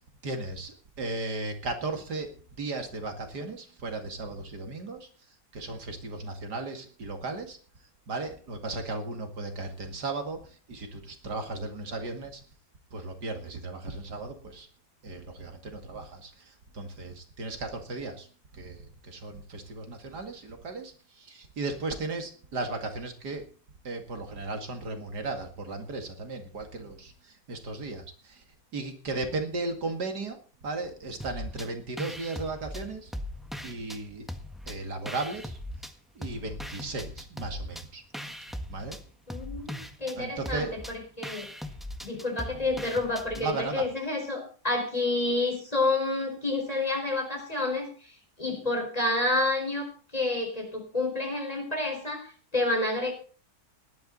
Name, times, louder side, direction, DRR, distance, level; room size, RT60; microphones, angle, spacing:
voice 1, 0.2-2.3 2.6-5.1 5.5-7.6 8.1-12.4 12.9-14.7 15.0-18.3 18.5-23.5 23.8-28.4 28.7-30.4 30.6-33.1 33.6-34.3 34.7-35.6 36.1-38.0 38.7-39.0 40.2-40.7 43.4-43.9, right 3 dB, 75° right, 6 dB, 2.8 m, -36 dB
sound 1, 31.2-31.7 32.0-34.0 34.3-35.9 36.2-43.5, left 1 dB, ahead, 1.3 m, -39 dB
voice 2, 39.3-41.5 42.0-53.1, left 2 dB, 20° left, 2 dB, 4.8 m, -29 dB
17.5 x 11.5 x 4.0 m, 0.40 s
omnidirectional pair, 1.8 m